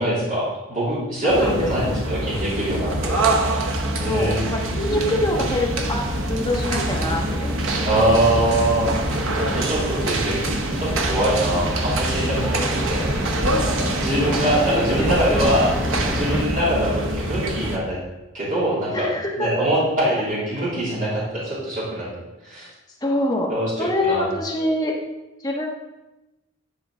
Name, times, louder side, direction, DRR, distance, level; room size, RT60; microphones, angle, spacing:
voice 1, 0.0-3.2 4.0-4.4 7.8-8.9 9.3-10.4 10.8-13.2 14.0-15.7 16.1-18.0 18.3-19.1 19.4-22.1 22.4-22.7 23.5-24.3, right 1 dB, 40° right, -8 dB, 3.0 m, -23 dB
voice 2, 1.2-2.0 4.0-6.0 6.3-7.8 13.3-13.9 14.4-15.4 16.5-16.8 18.9-19.7 23.0-23.5 23.8-24.9 25.4-25.7, left 1 dB, 20° left, -2 dB, 1.2 m, -25 dB
sound 1, 1.3-17.8, right 1 dB, 75° right, 1.0 m, -25 dB
sound 2, 5.1-16.5, equal, 5° right, 0.8 m, -30 dB
10.5 x 4.9 x 3.8 m, 1.0 s
head